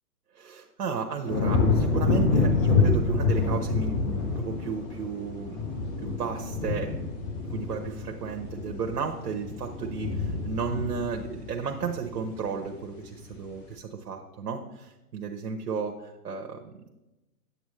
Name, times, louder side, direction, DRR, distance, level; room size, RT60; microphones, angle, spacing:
voice 1, 0.3-5.6 6.0-6.9 7.5-16.8, right 6 dB, 75° right, 2 dB, 1.0 m, -33 dB
sound 1, 1.3-12.6 13.0-13.4, left 4 dB, 25° left, 1.1 m, -27 dB
9.0 x 8.2 x 3.1 m, 1.0 s
hypercardioid pair, 150°, 48 cm